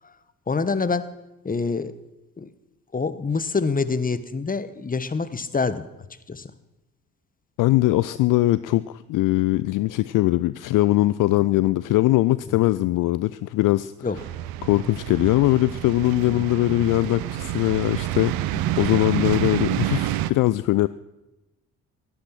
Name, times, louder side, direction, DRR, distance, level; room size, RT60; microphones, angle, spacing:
voice 1, 0.5-1.1 1.4-1.9 2.4-2.5 2.9-5.9 6.3-6.5 14.0-14.2 16.2-16.4 18.7-18.8, left 4 dB, 20° left, 14 dB, 1.2 m, -26 dB
voice 2, 7.6-13.9 14.6-20.9, left 17 dB, 50° left, 17 dB, 0.5 m, -21 dB
sound 1, 14.2-20.3, right 14 dB, 60° right, 0.8 m, -28 dB
17.5 x 13.5 x 5.9 m, 0.99 s
figure-of-eight pair, 45°, 40 cm